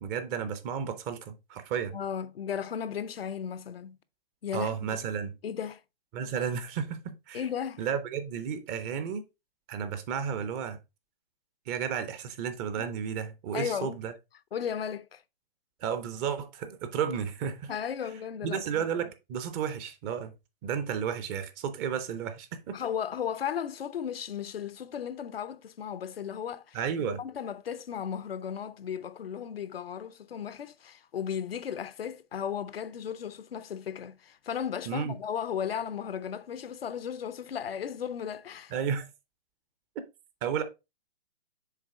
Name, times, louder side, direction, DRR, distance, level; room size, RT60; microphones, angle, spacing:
voice 1, 0.0-2.0 4.5-5.3 6.1-7.4 7.8-9.2 9.7-10.8 11.7-14.1 15.8-17.7 18.4-20.3 20.6-22.8 26.7-27.2 34.9-35.1 38.7-39.1 40.4-40.6, right 7 dB, 20° right, 0.5 m, -32 dB
voice 2, 1.9-4.0 4.4-5.0 5.4-5.8 7.3-7.8 12.7-12.9 13.5-14.0 14.5-15.2 17.7-18.9 22.7-26.8 27.1-38.7, left 8 dB, 80° left, 0.7 m, -35 dB
6.6 x 4.0 x 3.6 m
hypercardioid pair, 135°, 29 cm